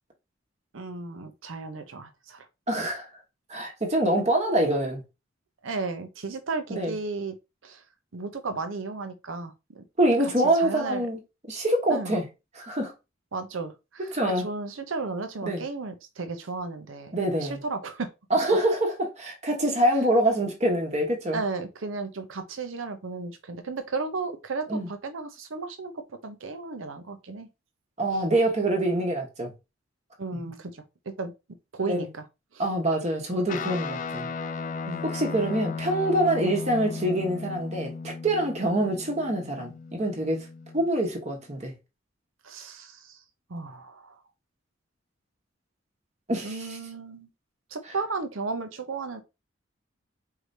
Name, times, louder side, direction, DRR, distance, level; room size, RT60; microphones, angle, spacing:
voice 1, 0.7-2.5 5.6-7.4 7.6-7.8 8.1-9.8 10.4-11.1 11.9-12.1 13.3-14.1 14.4-18.1 21.3-27.5 28.1-28.2 30.2-31.3 31.7-32.2 32.5-32.6 34.9-35.0 42.4-43.2 43.5-44.1 46.4-47.3 47.7-49.2, right 3 dB, 85° right, 0.7 m, -34 dB
voice 2, 2.7-3.1 3.5-5.0 6.7-6.9 10.0-11.2 11.5-12.2 12.6-12.9 14.1-14.5 15.4-15.6 17.1-17.6 18.3-21.4 24.7-24.9 28.0-29.5 31.9-32.1 32.6-34.3 35.0-40.5 40.7-41.7 46.3-46.8, right 1 dB, 35° right, 1.1 m, -25 dB
Guitar, 33.5-41.1, left 4 dB, 40° left, 0.3 m, -36 dB
4.7 x 3.3 x 2.7 m
head